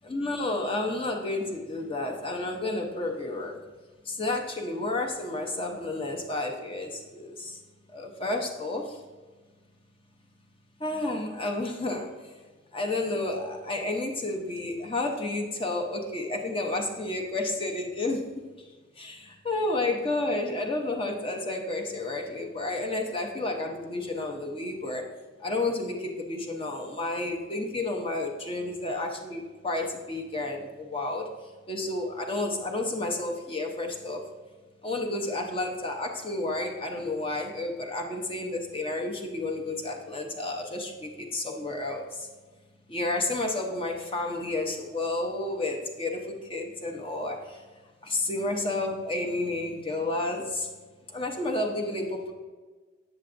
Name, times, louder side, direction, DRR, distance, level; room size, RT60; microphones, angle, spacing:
voice 1, 0.0-3.6 4.1-7.6 7.9-9.0 10.8-12.1 12.7-18.3 19.0-25.0 25.4-31.3 31.7-34.3 34.8-42.3 42.9-47.6 48.0-50.7 51.1-52.3, left 2 dB, 25° left, 2 dB, 0.6 m, -31 dB
7.6 x 7.0 x 2.5 m, 1.3 s
head